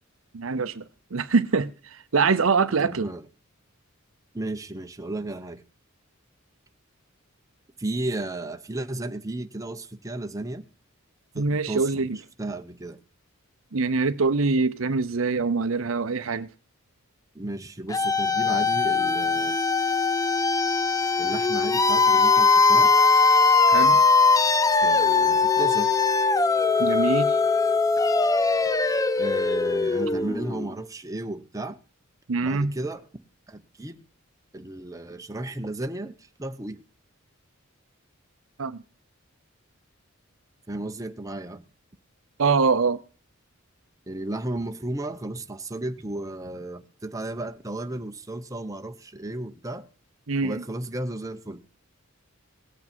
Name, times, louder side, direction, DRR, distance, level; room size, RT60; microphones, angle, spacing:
voice 1, 0.3-0.8 1.1-3.1 11.3-12.2 13.7-16.5 23.7-24.0 26.8-27.4 32.3-32.7 38.6-38.8 42.4-43.0 50.3-50.6, right 4 dB, 70° right, 0.7 m, -24 dB
voice 2, 2.8-3.3 4.3-5.6 7.8-10.6 11.3-12.1 12.4-13.0 17.3-19.6 21.2-22.9 24.8-25.9 29.2-31.8 32.4-33.0 33.5-34.0 34.5-36.8 40.7-41.6 44.1-49.9 50.4-51.6, right 2 dB, 15° right, 0.9 m, -34 dB
sound 1, 17.9-30.7, left 4 dB, 15° left, 0.5 m, -21 dB
18.0 x 8.5 x 4.4 m
head